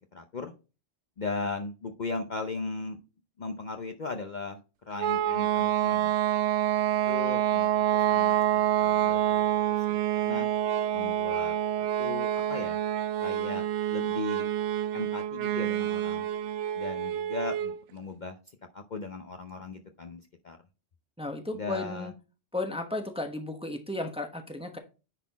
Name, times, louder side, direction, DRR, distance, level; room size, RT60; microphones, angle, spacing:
voice 1, 0.1-0.5 1.2-3.0 3.4-4.6 4.9-6.1 7.1-10.5 10.9-12.8 13.2-14.5 14.9-16.3 16.7-18.4 18.7-20.6 21.5-22.1, left 3 dB, 45° left, 5 dB, 0.7 m, -38 dB
sound 1, 5.0-17.8, right 11 dB, 75° right, 0.8 m, -27 dB
voice 2, 21.2-22.1 22.5-24.8, left 2 dB, 5° right, 5 dB, 0.9 m, -34 dB
10.0 x 4.2 x 4.1 m, 0.31 s
omnidirectional pair, 1.2 m